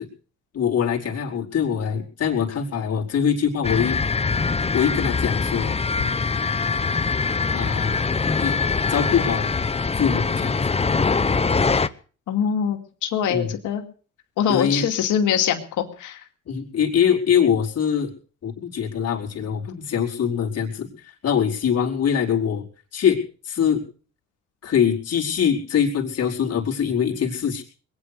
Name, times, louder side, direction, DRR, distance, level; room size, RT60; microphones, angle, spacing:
voice 1, 0.5-4.0 4.7-5.8 7.5-8.0 8.4-8.6 8.9-9.5 10.0-10.5 13.3-13.5 14.5-14.9 16.5-18.1 18.4-22.6 22.9-23.2 23.4-23.8 24.6-27.6, left 7 dB, 55° left, -2 dB, 4.8 m, -23 dB
sound 1, 3.6-11.9, left 4 dB, 20° left, 0.8 m, -23 dB
voice 2, 12.3-13.8 14.4-16.2, left 8 dB, 80° left, 5 dB, 2.4 m, -23 dB
21.0 x 9.9 x 6.7 m, 0.41 s
cardioid pair, 90°, 30 cm